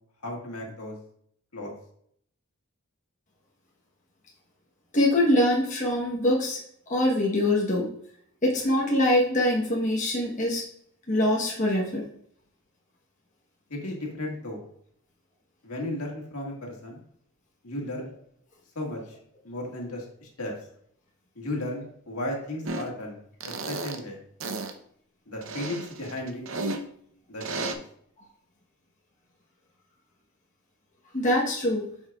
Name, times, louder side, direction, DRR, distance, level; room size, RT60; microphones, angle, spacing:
voice 1, 0.2-1.0 1.5-1.7 13.7-14.6 15.6-17.0 17.6-18.1 18.8-19.2 19.4-20.5 21.4-24.2 25.3-26.4 27.3-27.8, left 1 dB, 75° left, -1 dB, 1.7 m, -35 dB
voice 2, 4.9-6.6 6.9-7.9 8.4-10.6 11.1-12.0 31.1-31.8, left 1 dB, 35° left, -3 dB, 1.0 m, -23 dB
sound 1, 22.6-22.9 23.4-24.0 24.4-24.7 25.4-26.8 27.4-27.7, right 3 dB, 60° right, 0.7 m, -33 dB
8.5 x 5.6 x 2.3 m, 0.66 s
head